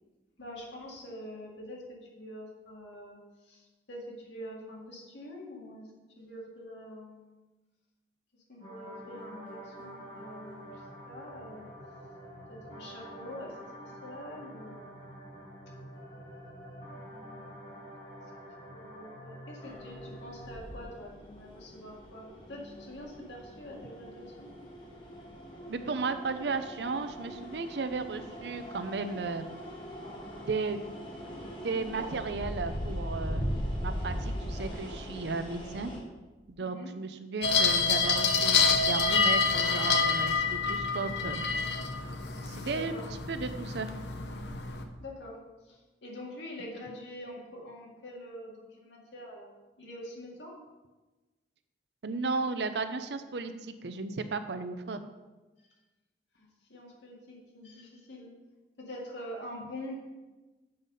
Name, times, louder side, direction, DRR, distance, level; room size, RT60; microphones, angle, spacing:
voice 1, 0.4-5.9 6.2-7.4 8.5-10.8 11.1-11.7 12.5-15.3 16.8-17.9 18.7-24.5 36.6-36.9 42.7-43.1 45.0-49.5 49.8-50.6 56.3-58.3 58.8-60.0, left 1 dB, 90° left, -2 dB, 2.1 m, -45 dB
sound 1, 8.6-20.6, equal, 55° left, 2.7 m, -47 dB
sound 2, 19.6-36.0, equal, 25° left, 1.6 m, -40 dB
voice 2, 25.7-29.4 30.5-30.8 31.6-33.5 33.8-35.9 36.5-41.4 42.4-42.9 43.3-43.9 52.0-55.0, right 4 dB, 70° right, 10 dB, 0.6 m, -34 dB
sound 3, 37.4-44.8, left 5 dB, 70° left, 0.8 m, -27 dB
7.8 x 5.3 x 5.6 m, 1.2 s
head